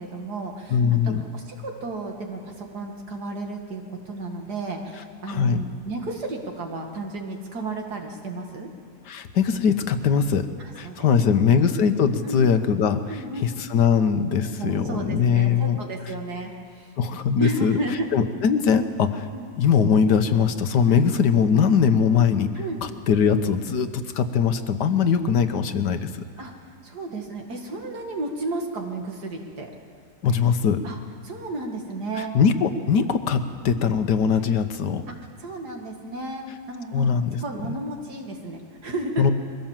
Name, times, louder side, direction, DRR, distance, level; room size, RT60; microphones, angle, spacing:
voice 1, 0.0-8.7 10.6-11.7 12.2-12.5 13.1-13.5 14.6-16.9 17.4-18.1 19.3-19.5 20.9-21.0 22.5-22.9 26.4-29.7 30.8-31.0 31.2-32.3 35.1-35.2 35.4-39.3, right 2 dB, 70° right, 2 dB, 2.6 m, -33 dB
voice 2, 0.7-1.2 5.3-5.6 9.1-10.5 10.7-13.0 13.4-15.8 17.0-17.8 18.1-19.3 19.6-22.5 22.8-26.2 30.2-30.8 32.3-35.0 36.9-37.7 39.2-39.3, left 6 dB, 80° left, 9 dB, 1.6 m, -21 dB
22.0 x 16.0 x 7.5 m, 2.2 s
omnidirectional pair, 1.8 m